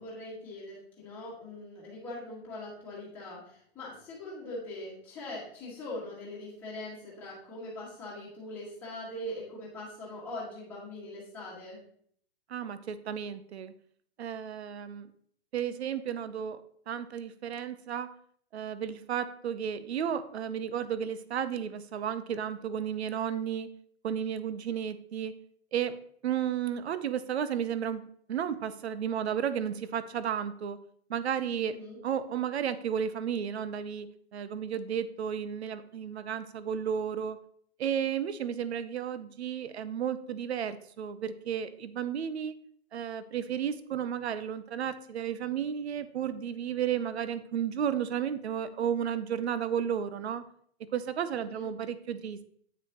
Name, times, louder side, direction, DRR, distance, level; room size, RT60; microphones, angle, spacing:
voice 1, 0.0-11.8 31.6-32.0 51.3-51.7, left 1 dB, 5° left, -8 dB, 1.6 m, -42 dB
voice 2, 12.5-13.7 14.2-15.1 15.5-16.6 16.9-18.1 18.5-23.7 24.0-25.3 25.7-26.0 26.2-30.8 31.1-31.8 32.0-34.1 34.3-37.4 37.8-42.6 42.9-50.4 50.9-52.4, right 8 dB, 70° right, 13 dB, 0.7 m, -33 dB
9.1 x 5.9 x 2.9 m, 0.63 s
hypercardioid pair, 180°, 33 cm